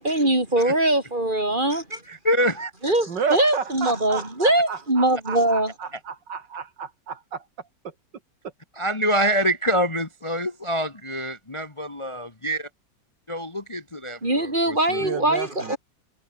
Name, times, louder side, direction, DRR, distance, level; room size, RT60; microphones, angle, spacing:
voice 1, 0.0-2.0 2.8-5.7 14.2-15.8, right 1 dB, 25° right, 5.8 m, -22 dB
voice 2, 2.1-2.7 8.8-12.7 13.3-15.1, equal, 20° left, 1.4 m, -26 dB
voice 3, 3.1-7.4 15.0-15.8, right 6 dB, 75° right, 2.6 m, -31 dB
omnidirectional pair, 1.9 m